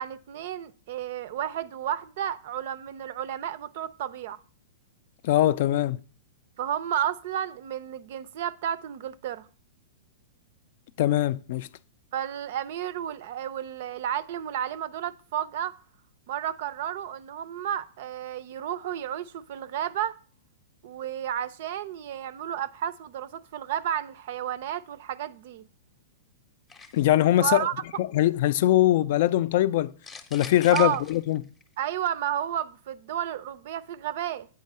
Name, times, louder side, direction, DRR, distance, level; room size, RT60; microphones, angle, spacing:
voice 1, 0.0-4.4 6.6-9.5 12.1-15.7 16.3-20.2 20.8-25.7 27.4-27.7 30.7-31.0 31.8-34.5, right 10 dB, 55° right, 0.4 m, -32 dB
voice 2, 5.2-6.0 11.0-11.7 26.9-27.7 28.0-29.9 30.3-31.4, left 13 dB, 55° left, 0.3 m, -22 dB
sound 1, 26.7-27.2 30.0-31.6, left 4 dB, 10° left, 0.6 m, -42 dB
8.2 x 4.7 x 5.4 m
hypercardioid pair, 145°, 0 cm